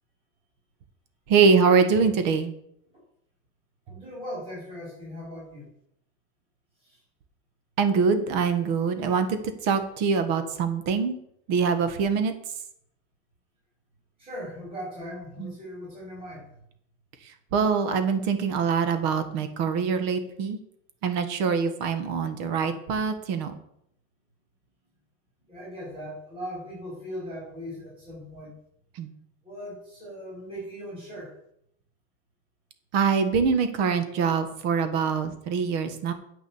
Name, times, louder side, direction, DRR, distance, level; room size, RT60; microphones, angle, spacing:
voice 1, 1.3-2.5 7.8-11.2 11.5-12.3 15.4-15.5 17.5-20.6 21.0-23.5 29.0-29.1 32.9-36.1, right 5 dB, 50° right, 9 dB, 1.5 m, -24 dB
voice 2, 3.9-5.7 6.8-7.0 14.2-16.5 25.5-28.5 29.4-31.3, equal, 25° right, -6 dB, 5.0 m, -39 dB
8.6 x 6.8 x 7.2 m, 0.72 s
cardioid pair, 175°, 34 cm